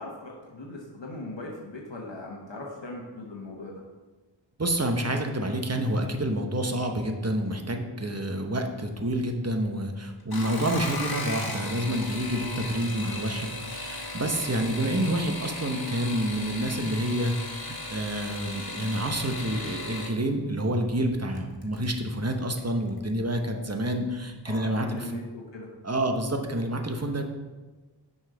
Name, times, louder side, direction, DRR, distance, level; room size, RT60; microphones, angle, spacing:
voice 1, 0.0-3.8 24.4-25.7, left 2 dB, 75° left, -2 dB, 1.0 m, -39 dB
voice 2, 4.6-25.1 25.8-27.2, right 1 dB, 35° right, 4 dB, 0.9 m, -28 dB
sound 1, 10.2-20.1 21.3-21.8 22.3-22.7 23.0-23.1, left 2 dB, 55° left, 1.2 m, -36 dB
6.3 x 5.4 x 5.0 m, 1.3 s
wide cardioid pair, 50°, 44 cm